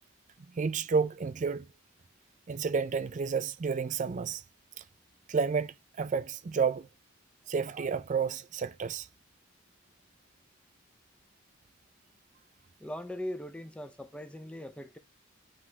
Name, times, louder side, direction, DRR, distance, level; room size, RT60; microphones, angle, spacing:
voice 1, 0.6-1.7 2.5-4.4 5.3-6.9 7.5-9.1, right 5 dB, 40° right, 0.4 m, -30 dB
voice 2, 12.8-15.0, left 1 dB, 5° left, 0.6 m, -40 dB
9.3 x 3.6 x 2.8 m
head